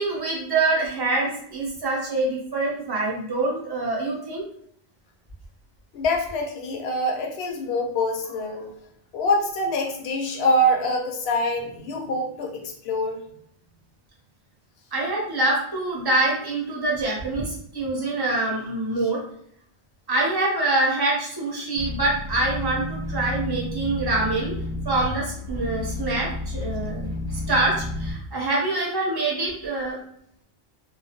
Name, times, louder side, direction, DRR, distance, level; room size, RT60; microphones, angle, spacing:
voice 1, 0.0-4.4 14.9-19.2 20.1-24.5 24.8-30.0, right 2 dB, 25° right, -3 dB, 0.6 m, -25 dB
voice 2, 5.9-8.7 9.1-13.2, left 1 dB, 70° left, 3 dB, 0.8 m, -25 dB
sound 1, 21.7-28.1, left 2 dB, 25° left, 0.7 m, -31 dB
2.3 x 2.0 x 2.7 m, 0.67 s
omnidirectional pair, 1.1 m